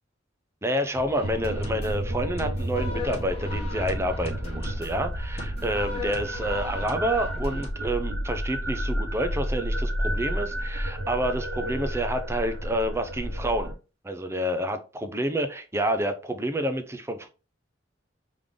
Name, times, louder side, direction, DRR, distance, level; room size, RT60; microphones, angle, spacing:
voice 1, 0.6-13.7 14.0-14.8 15.1-17.3, right 1 dB, 15° right, 0.5 m, -28 dB
sound 1, 0.9-7.7, left 2 dB, 30° left, 1.0 m, -39 dB
sound 2, 1.2-13.7, equal, 85° right, 1.3 m, -31 dB
3.7 x 3.4 x 3.6 m
head